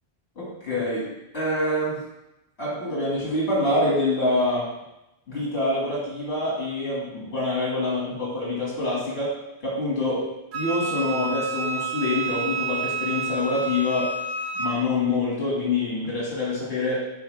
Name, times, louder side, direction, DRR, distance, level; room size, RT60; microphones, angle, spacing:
voice 1, 0.4-1.1 1.3-2.0 2.6-4.7 5.3-9.3 9.6-10.2 10.5-14.1 14.5-17.1, left 2 dB, 65° left, -6 dB, 2.7 m, -26 dB
Wind instrument woodwind instrument, 10.5-14.8, right 3 dB, 80° right, 1.0 m, -29 dB
8.9 x 4.4 x 3.5 m, 0.91 s
omnidirectional pair, 1.1 m